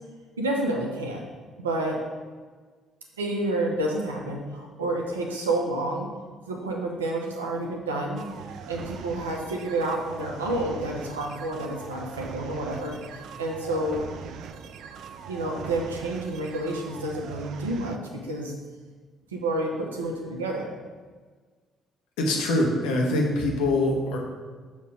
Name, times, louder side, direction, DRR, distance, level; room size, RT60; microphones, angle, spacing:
voice 1, 0.4-1.2 1.6-2.0 3.2-6.1 6.5-8.3 8.7-14.1 15.3-18.5 19.3-20.7, right 1 dB, 90° right, 0 dB, 0.8 m, -29 dB
sound 1, 8.2-18.0, right 7 dB, 65° right, 0.3 m, -41 dB
voice 2, 22.2-24.2, left 1 dB, 75° left, 0 dB, 1.1 m, -24 dB
6.5 x 3.1 x 4.9 m, 1.5 s
hypercardioid pair, 50°, 0 cm